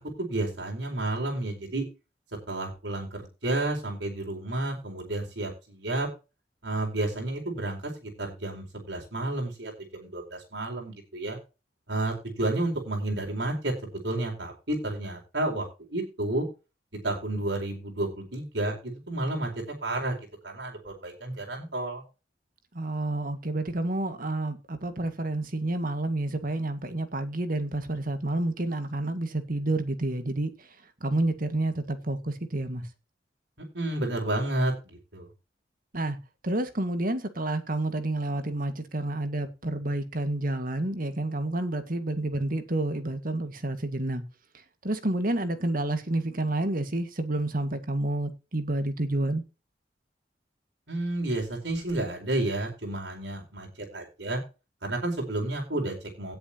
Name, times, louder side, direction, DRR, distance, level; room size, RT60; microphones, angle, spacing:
voice 1, 0.2-1.8 2.5-6.1 6.6-11.4 11.9-15.6 15.9-16.4 17.0-22.0 33.7-35.3 50.9-54.4 54.8-56.3, right 2 dB, 75° right, 4.6 m, -31 dB
voice 2, 22.7-30.7 31.0-32.9 35.9-36.2 36.4-44.2 44.8-49.4, right 2 dB, 50° right, 2.0 m, -29 dB
17.5 x 7.9 x 3.0 m
head